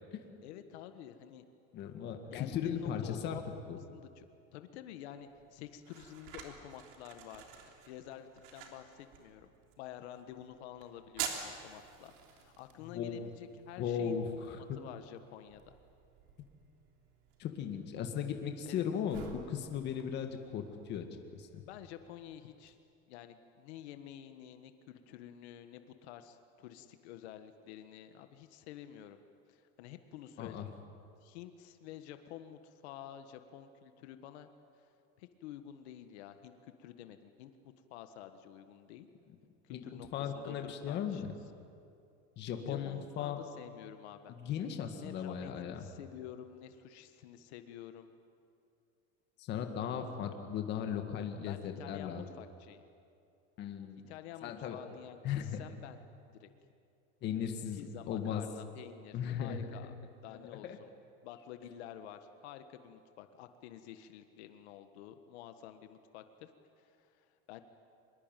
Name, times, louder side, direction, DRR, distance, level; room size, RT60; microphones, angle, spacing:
voice 1, 0.4-1.4 2.3-3.4 3.9-4.2 4.5-14.2 14.8-15.6 18.7-18.9 21.6-22.8 23.1-29.2 29.5-30.7 31.2-34.5 35.2-37.5 37.9-39.1 39.6-41.2 42.7-44.4 45.0-48.1 51.5-52.8 54.1-56.0 56.3-56.5 57.8-59.9 60.2-60.9 61.2-66.5 66.8-67.6, left 11 dB, 80° left, 8 dB, 1.6 m, -50 dB
voice 2, 1.7-3.4 3.7-3.8 12.9-13.2 13.8-14.8 17.4-21.0 21.3-21.6 30.4-30.7 39.7-41.3 42.4-43.4 44.3-45.9 49.4-52.3 53.6-54.1 54.4-54.8 55.2-55.6 57.2-58.5 59.1-59.7 60.6-60.8, left 8 dB, 30° left, 5 dB, 1.9 m, -37 dB
sound 1, 5.2-22.7, right 8 dB, 55° right, 3.3 m, -50 dB
25.0 x 22.0 x 9.2 m, 2.5 s
cardioid pair, 180°, 33 cm